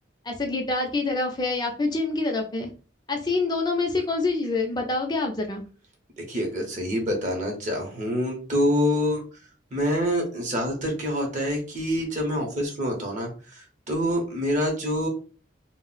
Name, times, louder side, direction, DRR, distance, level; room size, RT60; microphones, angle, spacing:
voice 1, 0.3-2.7 3.1-5.6, left 3 dB, 20° left, 2 dB, 0.5 m, -26 dB
voice 2, 6.2-9.2 9.7-15.1, equal, 40° right, 1 dB, 0.7 m, -26 dB
2.4 x 2.0 x 3.8 m, 0.37 s
head